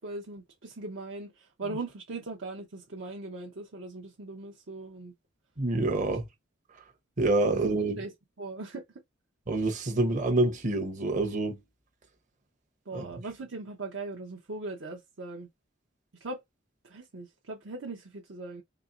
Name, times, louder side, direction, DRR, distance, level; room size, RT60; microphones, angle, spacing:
voice 1, 0.0-5.1 7.5-8.8 12.9-15.5 16.2-16.4 16.8-18.6, right 3 dB, 70° right, 0.8 m, -40 dB
voice 2, 5.6-6.3 7.2-8.0 9.5-11.6 12.9-13.0, right 2 dB, 40° right, 0.8 m, -27 dB
4.1 x 2.9 x 2.5 m
head